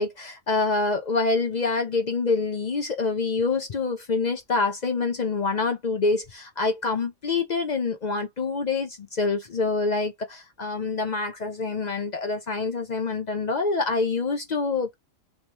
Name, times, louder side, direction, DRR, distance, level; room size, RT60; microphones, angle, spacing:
voice 1, 0.0-14.9, left 3 dB, 50° left, 0.5 m, -26 dB
3.6 x 2.8 x 3.1 m
omnidirectional pair, 1.4 m